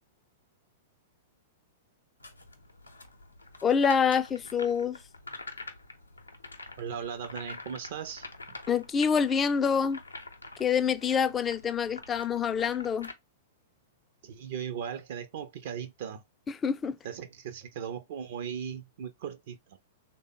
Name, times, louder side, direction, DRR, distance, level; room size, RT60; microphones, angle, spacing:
sound 1, 2.2-13.1, left 2 dB, 80° left, 0.6 m, -46 dB
voice 1, 3.6-5.0 8.7-10.0 10.6-13.1 16.6-17.0, left 6 dB, 20° left, 0.3 m, -26 dB
voice 2, 6.8-8.6 14.2-16.2 17.0-19.8, right 8 dB, 50° right, 0.5 m, -38 dB
3.3 x 2.1 x 3.7 m
figure-of-eight pair, 100°, 0 cm